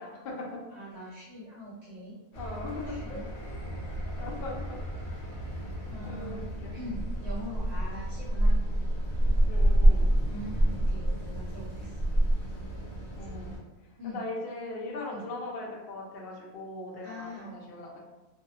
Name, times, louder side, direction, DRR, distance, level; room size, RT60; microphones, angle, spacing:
voice 1, 0.0-0.6 2.3-3.2 4.2-4.8 6.0-6.7 9.5-10.1 13.2-13.6 14.0-18.0, left 2 dB, 80° left, -2 dB, 0.5 m, -39 dB
voice 2, 0.7-2.2 2.6-3.3 5.9-6.4 6.7-8.6 10.3-12.1 14.0-14.2 15.1-15.3 17.0-17.6, equal, 60° right, -7 dB, 0.7 m, -42 dB
sound 1, 2.3-13.6, right 1 dB, 60° left, 1.0 m, -28 dB
2.6 x 2.0 x 2.4 m, 1.1 s
omnidirectional pair, 1.6 m